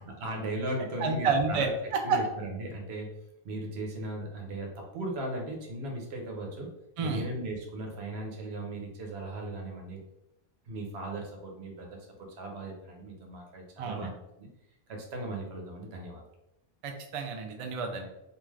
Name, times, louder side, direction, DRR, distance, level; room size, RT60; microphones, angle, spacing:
voice 1, 0.1-1.7 2.0-3.2 3.4-6.7 7.0-10.0 10.7-12.1 12.4-14.5 14.9-16.2, right 1 dB, 85° right, 1 dB, 1.0 m, -37 dB
voice 2, 1.0-2.2 7.0-7.2 13.8-14.1 16.8-18.1, right 4 dB, 55° right, 4 dB, 0.3 m, -29 dB
2.5 x 2.3 x 3.1 m, 0.88 s
omnidirectional pair, 1.0 m